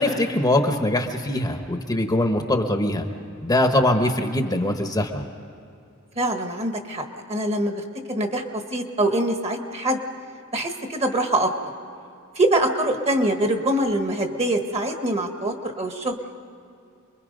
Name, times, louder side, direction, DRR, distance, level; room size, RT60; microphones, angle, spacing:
voice 1, 0.0-3.0 3.4-5.2, left 1 dB, 15° left, 5 dB, 1.1 m, -22 dB
voice 2, 6.2-10.0 10.5-11.5 12.3-16.2, right 1 dB, 30° right, 5 dB, 1.5 m, -24 dB
28.5 x 22.0 x 5.3 m, 2.5 s
head